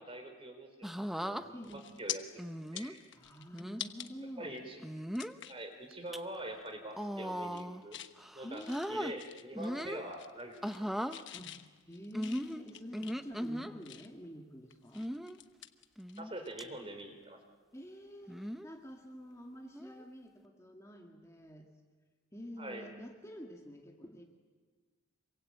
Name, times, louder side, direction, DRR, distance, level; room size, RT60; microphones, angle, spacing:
voice 1, 0.0-2.2 2.7-3.0 4.4-4.8 5.5-8.0 8.3-8.6 8.9-10.9 16.2-17.4 22.6-22.8, right 1 dB, 25° right, 6 dB, 4.0 m, -44 dB
sound 1, 0.8-1.4 2.4-2.9 3.5-3.8 4.8-5.4 5.9-6.2 6.9-7.8 8.2-9.1 9.6-10.1 10.6-11.2 12.1-13.7 14.9-15.4 16.0-16.3 16.6-16.7 18.3-18.7 19.7-20.0, equal, ahead, 0.8 m, -38 dB
sound 2, 1.1-1.3 1.6-2.2 2.6-4.1 4.5-4.6 5.1-5.6 6.1-6.3 6.6-7.0 7.4-8.1 8.5-9.9 10.1-10.8 11.1-14.3 14.7-16.5 16.8-17.0 18.9-19.0, left 11 dB, 60° left, 1.2 m, -46 dB
voice 2, 1.5-1.8 3.1-4.6 8.4-9.0 9.5-9.9 11.3-11.6 11.9-15.1 17.7-21.7 22.3-24.2, equal, 15° left, 1 dB, 2.0 m, -48 dB
27.0 x 24.0 x 8.8 m, 1.4 s
head